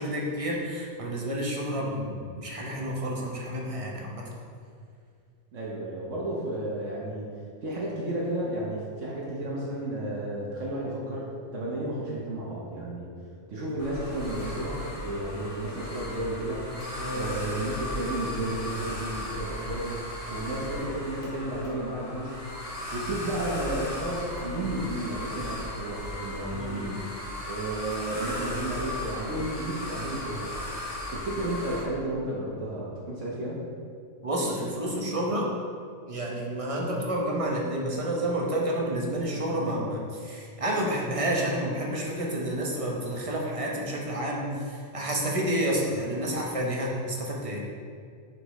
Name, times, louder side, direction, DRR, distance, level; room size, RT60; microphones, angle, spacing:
voice 1, 0.0-4.2 17.0-17.3 26.5-26.9 34.2-35.5 36.1-47.6, right 1 dB, 30° right, -2 dB, 0.8 m, -30 dB
voice 2, 5.5-7.3 7.6-13.1 13.5-20.0 20.3-22.4 22.9-27.0 27.5-30.5 31.1-33.6, right 1 dB, 70° right, -5 dB, 1.3 m, -32 dB
sound 1, 13.8-31.8, left 1 dB, 30° left, 1.0 m, -37 dB
6.5 x 6.0 x 3.1 m, 2.2 s
omnidirectional pair, 1.4 m